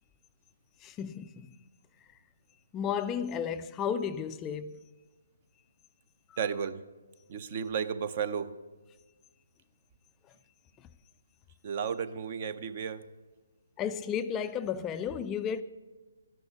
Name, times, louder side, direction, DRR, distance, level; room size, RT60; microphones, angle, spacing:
voice 1, 0.8-1.6 2.7-4.8 6.3-6.4 13.8-15.6, left 7 dB, 20° left, 0.4 m, -33 dB
voice 2, 6.4-6.8 7.3-8.5 11.6-13.1, right 7 dB, 40° right, 0.7 m, -33 dB
13.5 x 11.0 x 5.9 m
figure-of-eight pair, 140°, 0 cm